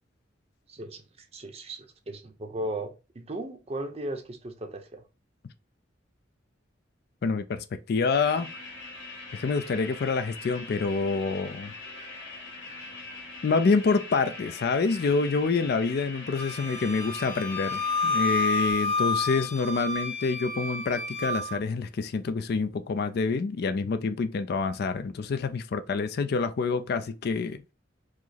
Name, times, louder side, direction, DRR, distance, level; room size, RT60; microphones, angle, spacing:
voice 1, 0.7-5.0, right 1 dB, 35° right, 0.6 m, -37 dB
voice 2, 7.2-8.5 9.3-11.7 13.4-27.6, left 4 dB, 55° left, 0.4 m, -27 dB
sound 1, 8.1-18.7, left 3 dB, 85° left, 1.5 m, -42 dB
Wind instrument woodwind instrument, 16.4-21.6, left 3 dB, 40° left, 0.8 m, -29 dB
4.9 x 2.0 x 4.1 m
head